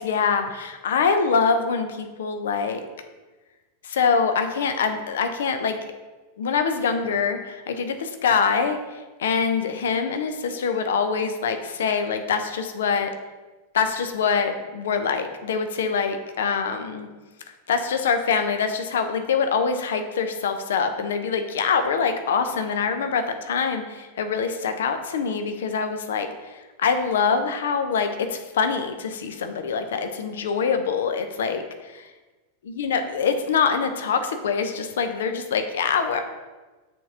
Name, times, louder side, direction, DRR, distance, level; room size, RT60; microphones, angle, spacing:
voice 1, 0.0-2.8 3.8-5.8 6.4-13.1 13.7-17.1 17.7-32.1 32.7-36.2, left 5 dB, 60° left, 7 dB, 0.7 m, -24 dB
7.3 x 4.6 x 5.6 m, 1.2 s
figure-of-eight pair, 90°, 0 cm